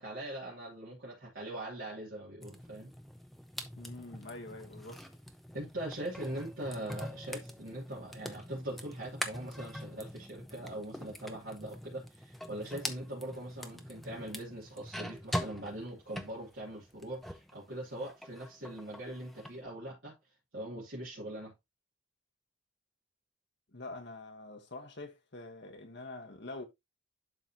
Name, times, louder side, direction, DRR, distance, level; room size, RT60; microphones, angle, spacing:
voice 1, 0.0-2.9 5.5-20.2 20.5-21.5, right 1 dB, 65° right, 2.7 m, -41 dB
sound 1, 2.4-17.5 17.9-19.6, equal, ahead, 0.6 m, -44 dB
voice 2, 3.8-5.0 23.7-26.7, left 2 dB, 55° left, 1.4 m, -45 dB
11.5 x 3.9 x 2.9 m
head